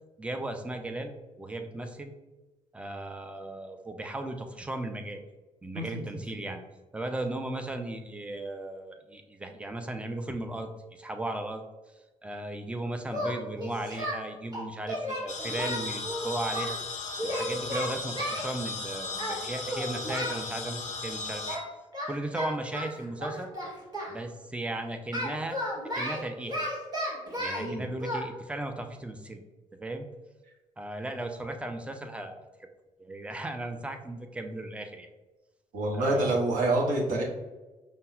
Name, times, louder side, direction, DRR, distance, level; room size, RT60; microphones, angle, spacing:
voice 1, 0.2-1.1 1.4-2.1 2.7-5.2 5.6-6.6 6.9-11.6 12.2-16.8 17.2-21.6 22.1-23.5 24.1-25.6 26.0-26.7 27.4-29.4 29.8-30.1 30.8-32.4 33.0-35.1 35.9-36.4, right 1 dB, 5° right, 6 dB, 0.4 m, -36 dB
Singing, 13.1-14.2 14.5-16.7 17.2-18.5 19.2-19.4 19.6-20.4 21.5-21.7 21.9-24.1 25.1-27.7 28.0-28.2, equal, 25° right, 1.2 m, -33 dB
sound 1, 15.3-21.6, left 3 dB, 45° left, 0.5 m, -36 dB
voice 2, 27.6-27.9 35.7-37.2, right 2 dB, 50° right, -2 dB, 0.8 m, -27 dB
5.2 x 2.1 x 2.5 m, 1.2 s
figure-of-eight pair, 45°, 17 cm